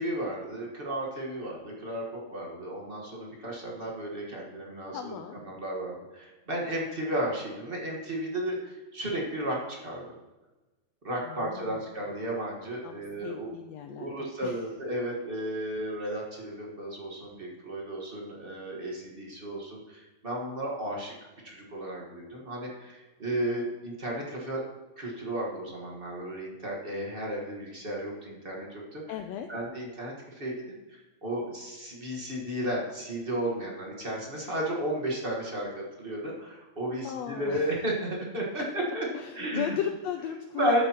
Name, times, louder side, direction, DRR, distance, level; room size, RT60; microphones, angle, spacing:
voice 1, 0.0-5.1 5.4-10.0 11.0-13.5 13.9-21.1 21.4-24.6 25.0-29.2 29.5-30.6 30.9-39.0 39.3-39.8 40.6-40.8, right 1 dB, 45° right, -2 dB, 0.7 m, -33 dB
voice 2, 4.9-5.4 11.2-11.7 12.8-14.5 29.1-29.5 37.0-37.6 39.1-40.8, left 9 dB, 90° left, 6 dB, 1.5 m, -36 dB
13.0 x 8.0 x 2.9 m, 1.1 s
omnidirectional pair, 3.5 m